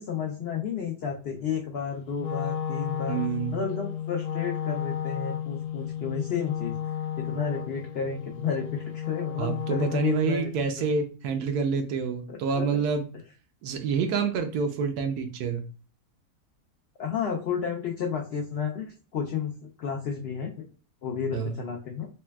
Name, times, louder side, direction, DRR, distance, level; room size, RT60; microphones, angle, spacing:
voice 1, 0.0-3.2 3.5-6.7 7.2-10.5 12.3-12.8 17.0-20.7 21.0-22.1, left 6 dB, 85° left, 0 dB, 0.5 m, -32 dB
Wind instrument woodwind instrument, 2.1-10.4, left 8 dB, 55° left, 0.7 m, -33 dB
voice 2, 3.1-3.6 9.4-13.0 13.6-15.6 21.3-21.6, right 5 dB, 80° right, 7 dB, 1.1 m, -27 dB
4.2 x 2.1 x 2.2 m, 0.36 s
omnidirectional pair, 1.6 m